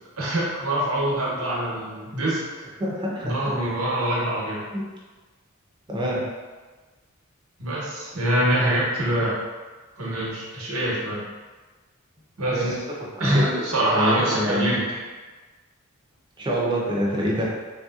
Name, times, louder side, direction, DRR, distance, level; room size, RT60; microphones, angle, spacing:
voice 1, 0.2-2.4 3.2-4.7 7.6-9.4 10.0-11.2 12.4-12.6 13.2-15.0, right 1 dB, 85° right, -6 dB, 0.9 m, -24 dB
voice 2, 2.8-3.3 4.7-4.8 5.9-6.2 12.4-12.7 13.1-14.8 16.4-17.5, equal, 20° right, -4 dB, 0.5 m, -26 dB
3.2 x 2.7 x 2.3 m, 1.3 s
head